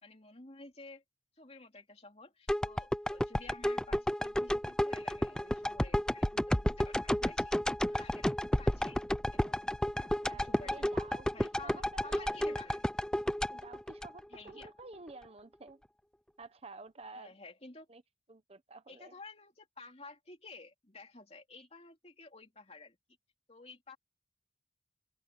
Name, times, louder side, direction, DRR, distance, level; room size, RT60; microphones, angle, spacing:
voice 1, 0.0-1.0 1.4-9.0 9.3-9.7 10.2-12.9 14.3-14.7 17.1-17.9 18.9-23.0 23.5-24.0, left 3 dB, 35° left, 2.9 m, -53 dB
sound 1, 2.5-14.7 15.1-15.2, left 1 dB, 5° left, 0.3 m, -32 dB
voice 2, 10.0-12.6 13.5-15.8 16.4-17.3 17.9-18.0 18.3-19.1, right 3 dB, 35° right, 0.8 m, -51 dB
head